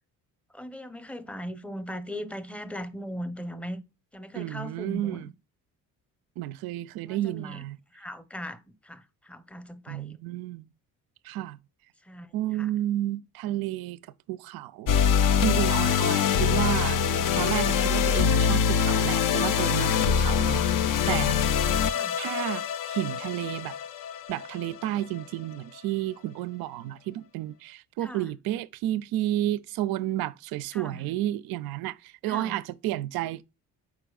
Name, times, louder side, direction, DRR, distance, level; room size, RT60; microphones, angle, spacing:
voice 1, 0.5-3.8 4.1-5.3 7.0-7.6 7.9-10.1 12.1-12.7 16.2-16.4 21.9-22.2 28.0-28.3 30.7-31.0 32.3-32.5, equal, 5° left, 0.7 m, -39 dB
voice 2, 4.3-5.3 6.4-7.8 9.9-10.7 11.2-11.6 12.3-14.0 14.3-14.9 15.4-17.0 17.3-20.7 21.1-21.5 22.2-23.8 24.3-33.4, right 14 dB, 55° right, 0.5 m, -31 dB
sound 1, 14.9-25.2, left 7 dB, 50° left, 0.5 m, -24 dB
4.7 x 4.5 x 2.3 m
hypercardioid pair, 50°, 44 cm